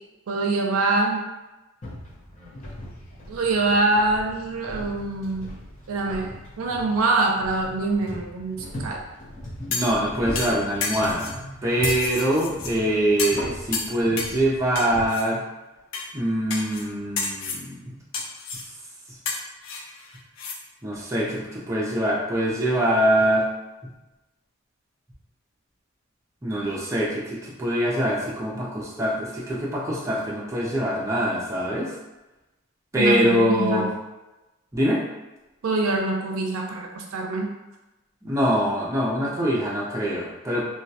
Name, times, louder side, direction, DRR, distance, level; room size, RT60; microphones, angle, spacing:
voice 1, 0.3-1.2 3.3-5.5 5.9-6.3 6.6-9.0 32.9-33.9 35.6-37.5, right 2 dB, 85° right, 1 dB, 0.4 m, -24 dB
sound 1, 1.8-15.1, equal, 35° left, 0.7 m, -39 dB
sound 2, 9.7-10.0 10.4-11.4 11.8-12.7 13.2-13.5 13.7-14.4 14.8-15.2 15.9-16.1 16.5-16.9 17.2-17.6 18.1-18.7 19.3-20.6 20.9-21.0, left 4 dB, 65° left, 0.4 m, -31 dB
voice 2, 9.7-11.3 11.6-15.4 16.1-17.8 20.8-23.5 26.4-27.2 27.6-31.9 32.9-33.9 34.7-35.0 38.2-40.6, equal, 15° right, -6 dB, 0.4 m, -24 dB
2.2 x 2.1 x 2.7 m, 1.0 s
head